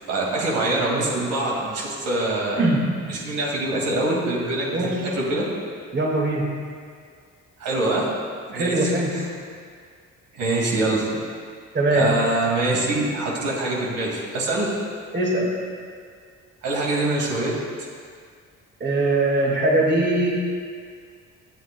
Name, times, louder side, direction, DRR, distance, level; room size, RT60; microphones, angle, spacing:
voice 1, 0.0-2.6 3.1-5.5 7.6-8.1 8.5-9.2 10.3-11.2 11.9-14.7 16.6-17.5, right 2 dB, 85° right, -3 dB, 2.2 m, -24 dB
voice 2, 2.6-3.1 4.7-5.2 5.9-6.6 8.5-9.3 11.7-12.2 15.1-15.7 18.8-20.3, right 1 dB, 35° right, -2 dB, 1.9 m, -22 dB
21.0 x 7.7 x 2.2 m, 2.1 s
cardioid pair, 90°, 30 cm